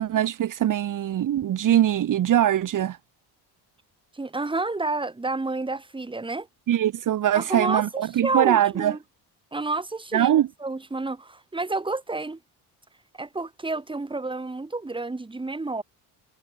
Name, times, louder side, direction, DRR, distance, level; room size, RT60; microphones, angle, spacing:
voice 1, 0.0-3.0 6.7-8.9 10.1-10.5, right 11 dB, 45° right, 2.7 m, -22 dB
voice 2, 4.1-6.5 7.3-9.0 9.5-12.4 13.2-15.8, right 3 dB, 10° right, 7.2 m, -30 dB
cardioid pair, 165°, 42 cm